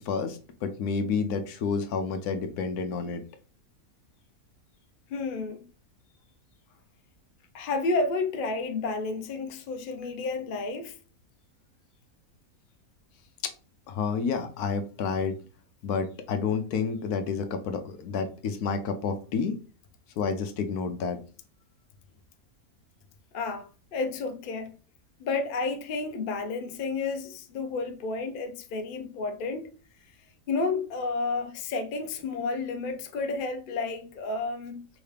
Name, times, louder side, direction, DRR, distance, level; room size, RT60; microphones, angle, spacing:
voice 1, 0.1-3.2 13.9-15.4 15.8-19.6 20.2-21.2, left 5 dB, 85° left, 1.2 m, -29 dB
voice 2, 5.1-5.6 7.5-11.0 23.3-24.7 25.2-29.7 30.5-34.9, left 3 dB, 50° left, 0.7 m, -31 dB
4.9 x 3.2 x 3.3 m
omnidirectional pair, 1.6 m